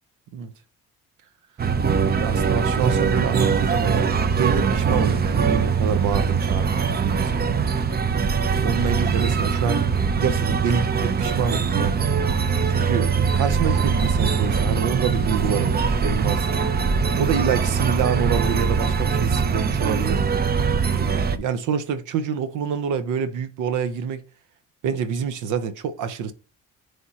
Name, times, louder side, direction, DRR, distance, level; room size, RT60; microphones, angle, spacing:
sound 1, 1.6-21.4, right 5 dB, 30° right, 0.6 m, -22 dB
voice 1, 2.2-7.6 8.2-12.0 12.7-16.6 17.2-20.2 20.8-24.2 24.8-26.3, right 7 dB, 85° right, 0.8 m, -27 dB
9.5 x 3.4 x 2.9 m
cardioid pair, 90°, 30 cm